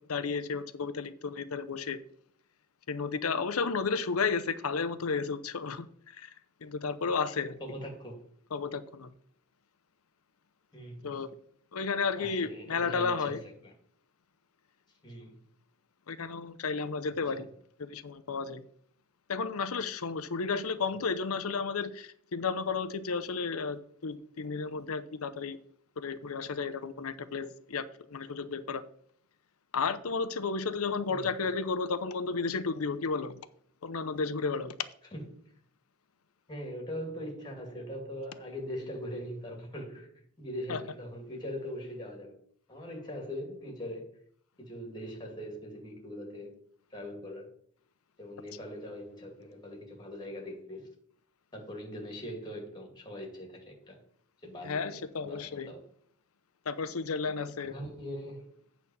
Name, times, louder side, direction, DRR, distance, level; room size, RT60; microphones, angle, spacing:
voice 1, 0.1-2.0 2.9-6.3 6.6-7.6 8.5-9.1 11.0-11.3 11.7-13.4 16.1-17.5 17.8-18.6 19.3-25.6 26.0-28.8 29.7-33.4 33.8-34.7 40.7-40.8 54.6-55.7 56.7-57.7, left 5 dB, 75° left, 0.7 m, -33 dB
voice 2, 7.6-8.2 10.7-11.2 12.2-13.4 15.0-15.3 17.3-17.5 31.1-31.2 35.1-35.4 36.5-42.4 42.7-44.2 44.6-46.5 46.9-47.5 48.2-50.9 51.5-54.0 54.4-55.8 57.6-58.5, equal, 20° left, 2.4 m, -41 dB
8.4 x 4.2 x 7.1 m
head